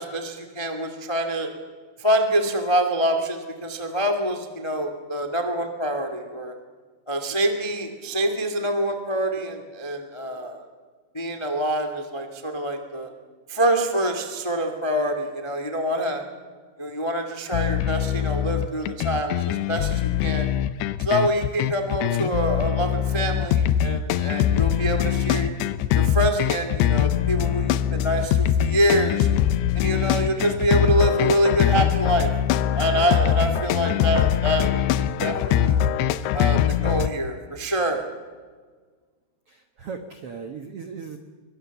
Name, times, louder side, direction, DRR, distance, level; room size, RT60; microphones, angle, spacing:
voice 1, 0.0-1.5 2.0-6.5 7.1-10.7 11.1-13.1 13.5-16.2 16.8-20.5 21.0-25.5 25.9-29.3 29.7-32.3 32.7-34.7 35.0-35.8 36.3-38.0, right 1 dB, 25° left, 4 dB, 0.5 m, -25 dB
sound 1, 17.5-37.1, left 10 dB, 85° left, 2.8 m, -23 dB
voice 2, 39.5-41.2, right 5 dB, 80° right, 6 dB, 1.3 m, -37 dB
24.0 x 22.5 x 7.2 m, 1.5 s
omnidirectional pair, 4.7 m